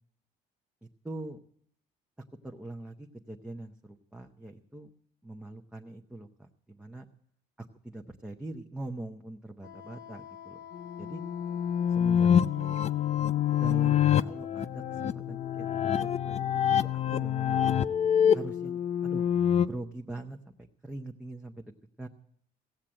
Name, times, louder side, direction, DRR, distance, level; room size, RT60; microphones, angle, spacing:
voice 1, 0.8-1.4 2.4-4.9 5.2-7.1 7.6-10.6 11.0-11.2 11.9-12.8 13.5-17.6 18.3-19.3 19.6-20.5 20.8-21.7 22.0-22.1, right 2 dB, 5° right, 1 dB, 0.8 m, -42 dB
Wind instrument woodwind instrument, 9.6-13.8, left 9 dB, 55° left, 1.1 m, -47 dB
sound 1, 10.8-19.7, left 9 dB, 40° left, 0.5 m, -26 dB
16.5 x 7.4 x 8.8 m, 0.66 s
cardioid pair, 110°, 17 cm